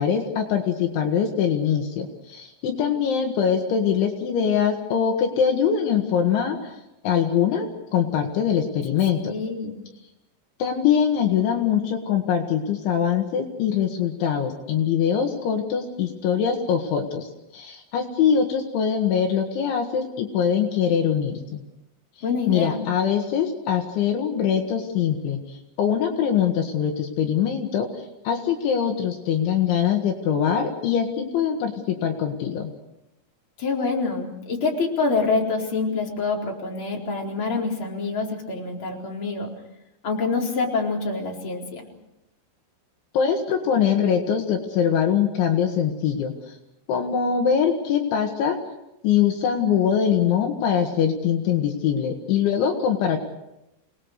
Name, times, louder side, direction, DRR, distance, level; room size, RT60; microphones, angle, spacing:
voice 1, 0.0-6.8 7.0-9.2 10.6-21.6 22.5-32.7 43.1-46.6 46.9-48.6 49.0-53.2, left 8 dB, 70° left, 3 dB, 4.1 m, -23 dB
voice 2, 9.2-9.7 22.2-22.9 33.6-39.5 40.0-41.9, left 4 dB, 25° left, -1 dB, 4.4 m, -26 dB
29.0 x 19.5 x 6.7 m, 0.89 s
omnidirectional pair, 5.7 m